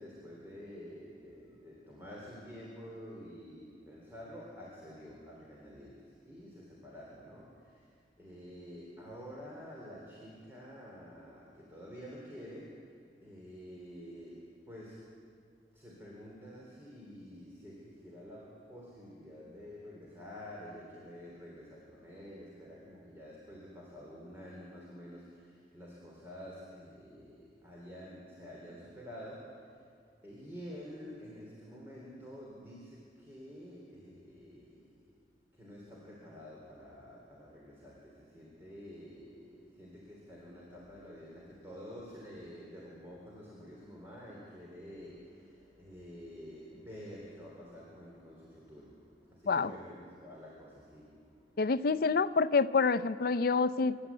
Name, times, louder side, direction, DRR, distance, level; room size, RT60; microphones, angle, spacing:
voice 1, 0.0-12.9 13.2-15.1 15.7-29.8 30.2-35.0 35.5-51.7, equal, 15° right, -4 dB, 3.5 m, -49 dB
voice 2, 51.6-54.0, left 4 dB, 60° left, 12 dB, 0.5 m, -27 dB
26.0 x 11.5 x 8.5 m, 2.2 s
head